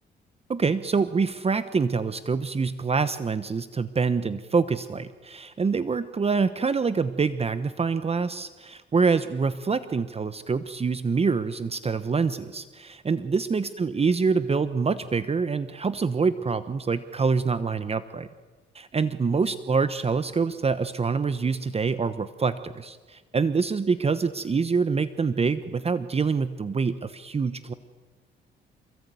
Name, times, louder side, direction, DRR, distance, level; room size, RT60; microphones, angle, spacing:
voice 1, 0.5-18.3 18.7-27.7, right 5 dB, 30° right, 12 dB, 1.1 m, -26 dB
27.5 x 21.0 x 9.5 m, 1.4 s
cardioid pair, 90°, 20 cm